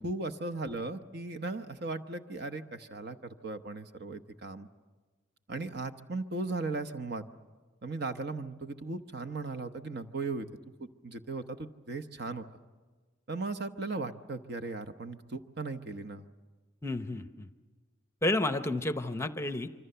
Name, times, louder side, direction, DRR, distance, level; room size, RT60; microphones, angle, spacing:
voice 1, 0.0-4.7 5.5-7.2 7.8-10.5 10.8-12.4 13.3-16.3, right 3 dB, 50° right, 9 dB, 1.0 m, -37 dB
voice 2, 16.8-17.5 18.2-19.7, left 2 dB, 15° left, 9 dB, 0.7 m, -31 dB
26.0 x 25.0 x 6.8 m, 1.3 s
head